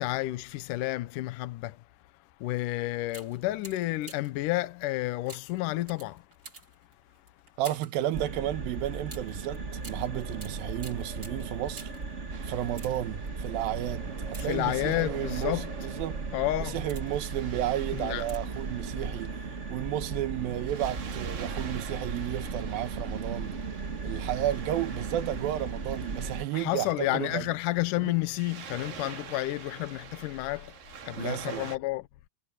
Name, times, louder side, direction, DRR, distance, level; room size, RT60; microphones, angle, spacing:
voice 1, 0.0-1.8 2.4-6.3 14.4-15.7 16.3-16.8 17.9-18.2 26.5-32.1, left 17 dB, 75° left, 2.2 m, -31 dB
sound 1, 2.5-2.7 3.1-4.4 5.3-8.0 9.1-12.1 12.6-13.3 14.2-15.1 15.7-16.0 16.5-17.3 18.2-18.7 18.9-19.0, right 3 dB, 25° right, 3.8 m, -49 dB
voice 2, 7.6-11.9 12.4-16.2 16.6-19.4 19.7-23.6 24.0-27.5 28.0-28.1 31.2-31.7, right 13 dB, 90° right, 2.9 m, -33 dB
sound 2, 8.1-26.4, right 4 dB, 55° right, 0.8 m, -36 dB
Waves surf, 12.3-31.8, right 7 dB, 75° right, 4.3 m, -47 dB
omnidirectional pair, 4.0 m